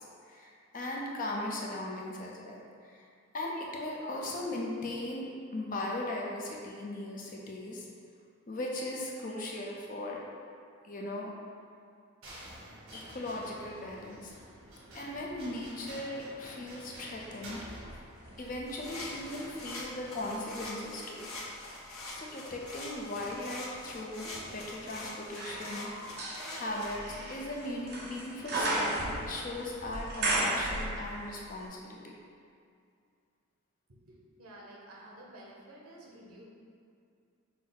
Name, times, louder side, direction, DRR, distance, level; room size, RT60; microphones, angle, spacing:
voice 1, 0.0-3.1 3.3-7.9 8.5-10.2 10.8-11.3 12.9-14.3 14.9-17.6 17.9-18.0 18.4-21.3 22.1-29.0 29.3-32.1, left 1 dB, 35° left, -2 dB, 0.5 m, -38 dB
sound 1, 12.2-20.7, equal, 65° right, 1.1 m, -50 dB
sound 2, 17.3-19.5 20.0-31.4 31.6-31.7, right 1 dB, 45° right, 0.6 m, -37 dB
sound 3, 18.7-26.9, left 2 dB, 75° left, 1.0 m, -44 dB
voice 2, 33.9-36.4, right 1 dB, 85° right, -3 dB, 0.8 m, -51 dB
5.9 x 2.0 x 3.9 m, 2.4 s
head